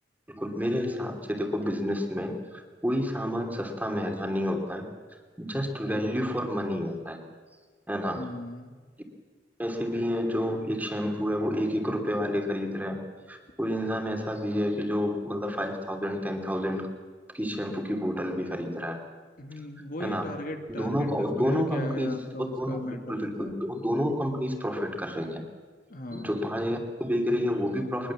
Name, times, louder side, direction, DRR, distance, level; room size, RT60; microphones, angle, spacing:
voice 1, 0.3-4.9 5.4-7.2 7.9-8.3 9.6-13.0 13.3-16.9 17.3-19.0 20.0-20.2 20.7-22.1 22.4-25.4 26.1-28.1, equal, 10° right, 4 dB, 2.9 m, -29 dB
voice 2, 8.2-8.8 19.4-23.5 25.9-26.4, left 1 dB, 50° left, 5 dB, 1.9 m, -38 dB
22.5 x 21.0 x 7.4 m, 1.5 s
head